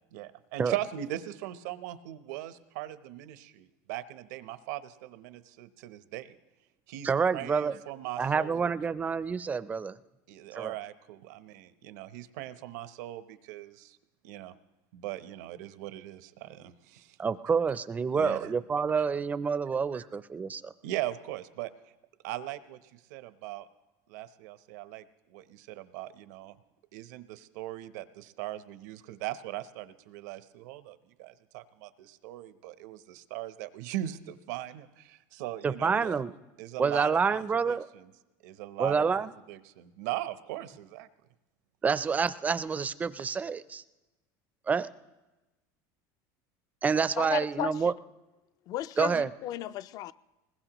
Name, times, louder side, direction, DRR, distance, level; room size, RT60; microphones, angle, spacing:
voice 1, 0.1-6.3 6.9-8.7 10.3-14.0 14.2-14.5 14.9-17.2 18.1-18.5 19.9-20.1 20.8-21.7 22.2-23.7 24.1-26.6 26.9-36.2 36.6-38.1 38.4-41.1, right 14 dB, 80° right, 0.8 m, -39 dB
voice 2, 7.0-7.7 8.2-9.9 10.6-10.7 17.2-20.7 35.6-36.3 36.8-37.9 38.8-39.3 41.8-43.8 44.7-44.9 46.8-47.9 49.0-49.3, right 5 dB, 15° right, 0.4 m, -28 dB
voice 3, 47.2-47.9 48.7-50.1, left 13 dB, 45° left, 0.4 m, -35 dB
20.5 x 20.5 x 3.0 m
cardioid pair, 145°, 9 cm